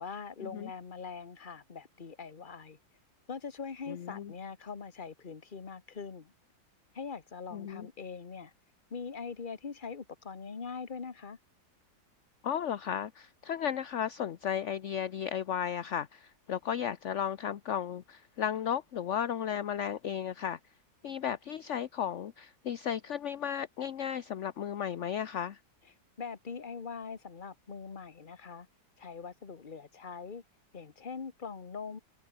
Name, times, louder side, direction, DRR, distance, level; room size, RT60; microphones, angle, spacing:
voice 1, 0.0-2.8 3.3-6.3 6.9-8.5 8.9-11.4 26.2-28.7 29.0-30.4 30.7-32.0, left 5 dB, 30° left, 1.4 m, -42 dB
voice 2, 3.9-4.3 7.5-7.9 12.4-20.6 21.0-25.6, left 9 dB, 50° left, 0.9 m, -34 dB
omnidirectional pair, 2.0 m